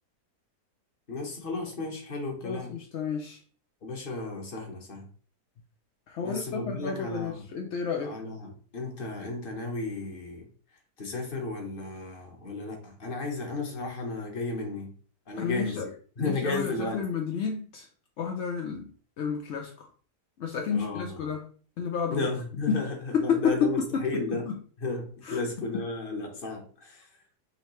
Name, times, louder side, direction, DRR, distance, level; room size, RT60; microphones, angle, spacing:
voice 1, 1.1-2.7 3.8-5.1 6.2-7.5 8.0-10.4 11.0-14.9 15.3-17.0 20.7-21.3 22.1-24.4 24.8-27.1, left 3 dB, 35° left, 2 dB, 1.2 m, -34 dB
voice 2, 2.4-3.4 6.1-8.1 15.4-15.9 16.2-17.9 18.2-18.9 19.2-19.7 20.4-21.5 21.8-22.3 22.7-22.9 23.1-24.0 24.3-24.4 25.2-25.8, left 6 dB, 65° left, 2 dB, 0.7 m, -30 dB
5.5 x 3.2 x 3.1 m, 0.42 s
omnidirectional pair, 1.7 m